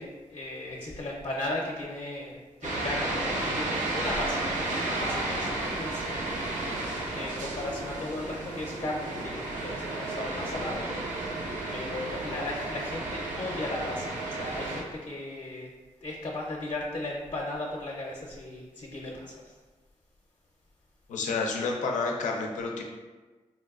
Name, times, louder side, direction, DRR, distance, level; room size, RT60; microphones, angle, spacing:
voice 1, 0.0-4.5 4.7-6.2 7.1-10.8 11.1-11.2 11.7-15.7 16.0-19.6, left 1 dB, 40° left, -2 dB, 0.6 m, -36 dB
sound 1, 2.6-14.8, right 2 dB, 85° right, 0.5 m, -32 dB
voice 2, 21.1-22.8, left 4 dB, 90° left, 1 dB, 0.4 m, -29 dB
4.1 x 2.2 x 2.3 m, 1.3 s
cardioid pair, 50°, 13 cm